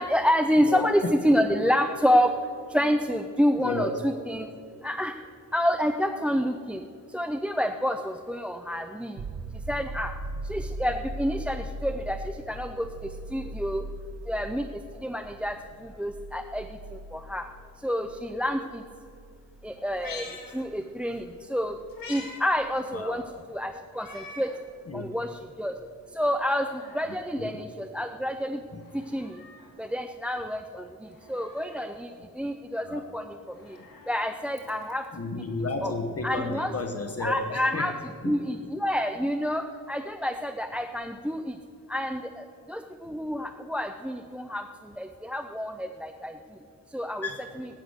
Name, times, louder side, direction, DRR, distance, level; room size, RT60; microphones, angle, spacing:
voice 1, 0.0-2.3 2.7-4.5 4.8-5.1 5.5-6.8 7.1-9.2 9.7-10.1 10.5-12.2 12.5-12.9 13.3-13.8 14.3-14.6 15.0-15.6 16.0-16.6 17.1-17.4 17.8-18.8 19.6-20.3 20.5-21.2 21.5-21.7 22.1-23.2 23.5-24.5 24.9-25.3 25.6-25.7 26.2-26.7 26.9-28.6 29.1-29.3 29.8-30.8 31.3-32.1 32.4-33.2 34.1-35.0 35.8-35.9 36.2-36.7 37.2-37.9 38.2-41.4 41.9-44.6 45.0-46.3 46.9-47.3, equal, 5° right, 7 dB, 0.5 m, -28 dB
voice 2, 0.6-1.1 3.6-4.0 22.9-23.2 24.1-24.3 24.9-25.1 27.4-27.5 28.7-28.8 32.8-33.0 35.1-37.9 38.2-38.4 47.2-47.5, left 2 dB, 45° left, 4 dB, 1.3 m, -32 dB
sound 1, 9.2-22.7 25.4-25.5, right 1 dB, 60° right, 1.0 m, -40 dB
Meow, 19.9-21.2 21.5-22.4 22.8-22.9 23.9-24.6 25.1-25.2 26.2-27.2 28.7-29.7 31.1-31.9 33.4-35.1 36.3-36.4, left 3 dB, 80° left, 2.4 m, -46 dB
18.0 x 9.3 x 6.5 m, 2.6 s
wide cardioid pair, 125°, 34 cm